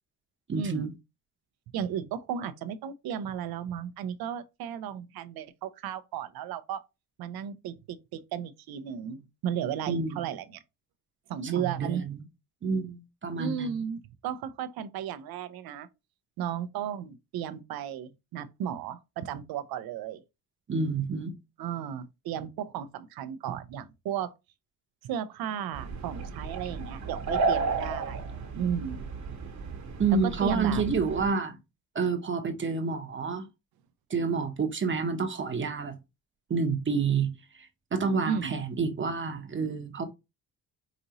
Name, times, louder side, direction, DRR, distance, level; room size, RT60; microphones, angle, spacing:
voice 1, 0.5-0.9 9.9-10.3 11.4-12.2 12.6-13.8 20.7-21.4 30.0-31.6 31.9-33.4 34.1-36.0 36.5-40.1, right 4 dB, 35° right, 0.9 m, -29 dB
voice 2, 1.7-6.8 7.2-10.6 11.3-12.0 13.4-15.9 16.4-20.2 21.6-24.3 25.0-28.2 28.5-29.0 30.2-30.8 38.2-38.5, right 9 dB, 80° right, 0.6 m, -34 dB
sound 1, 25.7-31.3, right 4 dB, 50° right, 1.1 m, -33 dB
5.0 x 2.6 x 2.8 m
cardioid pair, 90°, 36 cm